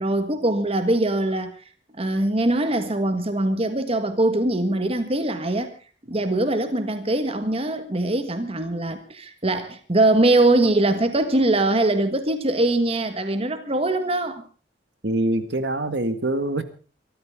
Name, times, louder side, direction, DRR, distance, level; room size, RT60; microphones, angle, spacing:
voice 1, 0.0-1.5 2.0-5.7 6.1-14.4, right 2 dB, 35° right, 1.6 m, -22 dB
voice 2, 15.0-16.6, right 1 dB, 65° right, 1.9 m, -24 dB
24.0 x 13.5 x 3.7 m
head